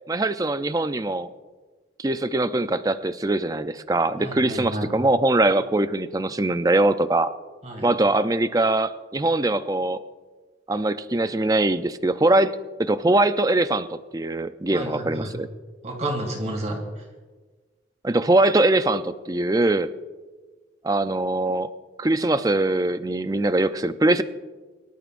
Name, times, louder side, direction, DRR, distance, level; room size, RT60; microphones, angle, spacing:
voice 1, 0.1-1.3 2.0-7.3 7.8-10.0 10.7-15.5 18.0-19.9 20.8-21.7 22.0-24.2, right 2 dB, 20° right, 11 dB, 0.4 m, -22 dB
voice 2, 4.2-4.9 7.6-7.9 14.7-15.3 15.8-17.1, right 1 dB, 35° right, 0 dB, 2.6 m, -30 dB
25.0 x 12.5 x 2.6 m, 1.3 s
head